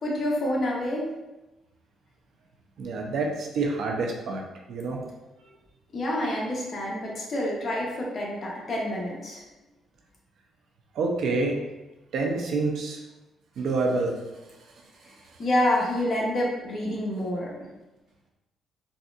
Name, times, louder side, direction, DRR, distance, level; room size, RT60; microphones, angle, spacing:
voice 1, 0.0-1.1 5.9-9.4 15.4-17.5, left 1 dB, 45° left, -4 dB, 1.0 m, -27 dB
voice 2, 2.8-4.4 4.7-5.0 10.9-11.6 12.1-13.0 13.6-14.1, right 3 dB, 70° right, 1 dB, 0.6 m, -27 dB
4.1 x 2.4 x 2.5 m, 1.1 s
cardioid pair, 90°, 0 cm